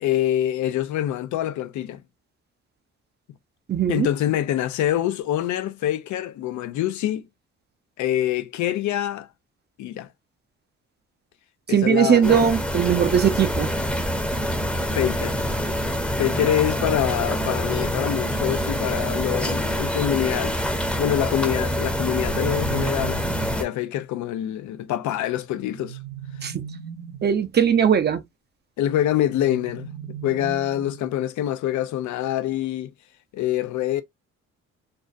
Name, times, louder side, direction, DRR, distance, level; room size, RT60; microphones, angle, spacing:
voice 1, 0.0-2.0 3.9-7.2 8.0-9.3 9.8-10.1 11.7-12.3 14.9-15.4 16.2-20.6 21.0-23.2 23.6-26.0 28.8-29.9 30.2-32.9 33.3-34.0, left 12 dB, 70° left, 0.5 m, -25 dB
voice 2, 3.7-4.1 11.7-13.7 26.4-26.6 27.2-28.2, right 8 dB, 35° right, 0.5 m, -19 dB
sound 1, 12.2-23.6, equal, 5° left, 0.6 m, -26 dB
sound 2, 21.9-23.7 25.6-27.4 29.3-31.2, right 8 dB, 65° right, 0.7 m, -38 dB
2.5 x 2.1 x 2.5 m
cardioid pair, 90°, 30 cm